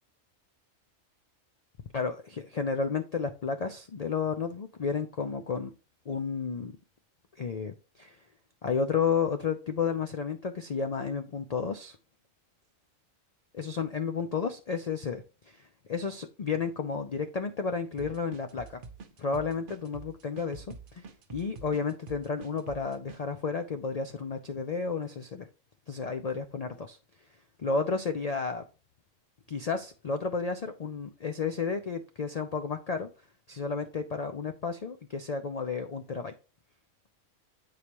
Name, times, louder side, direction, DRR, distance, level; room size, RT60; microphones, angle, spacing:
voice 1, 1.9-5.7 6.1-6.8 7.4-8.2 8.6-12.0 13.5-18.8 19.2-20.7 20.9-25.5 25.9-27.0 27.6-28.6 29.5-33.1 33.5-36.3, left 5 dB, 65° left, 7 dB, 0.4 m, -32 dB
sound 1, 18.0-23.2, right 4 dB, 45° right, 0.8 m, -47 dB
8.4 x 4.8 x 3.0 m, 0.34 s
omnidirectional pair, 1.4 m